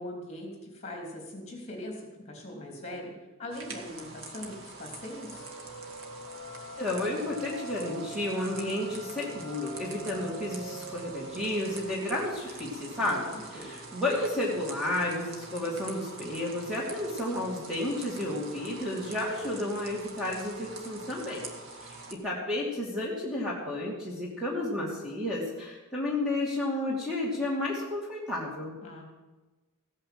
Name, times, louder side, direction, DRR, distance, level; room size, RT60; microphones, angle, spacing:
voice 1, 0.0-3.1 3.4-5.5 13.0-13.7 28.8-29.0, left 1 dB, 30° left, 1 dB, 3.3 m, -41 dB
sound 1, 3.5-22.1, right 3 dB, 65° right, 1.9 m, -45 dB
sound 2, 5.3-12.6, right 1 dB, 40° right, 5.4 m, -45 dB
voice 2, 6.8-21.4 21.8-28.7, left 1 dB, 5° right, -4 dB, 2.6 m, -32 dB
16.0 x 8.8 x 7.8 m, 1.2 s
head